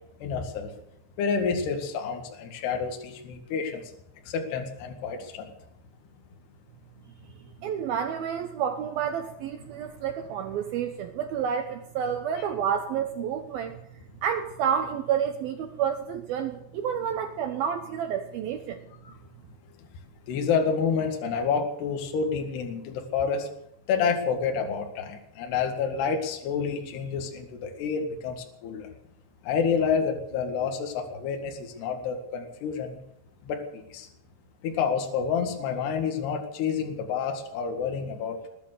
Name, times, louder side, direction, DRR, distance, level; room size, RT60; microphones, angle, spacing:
voice 1, 0.2-0.7 1.2-3.8 4.3-5.5 12.4-12.5 19.0-19.2 20.3-23.5 23.9-28.9 29.4-33.0 33.5-33.6 33.9-34.1 34.6-38.4, left 6 dB, 65° left, 3 dB, 3.6 m, -28 dB
voice 2, 7.6-13.7 14.2-18.8, right 8 dB, 80° right, 6 dB, 2.1 m, -29 dB
20.5 x 9.5 x 6.7 m, 0.75 s
omnidirectional pair, 5.7 m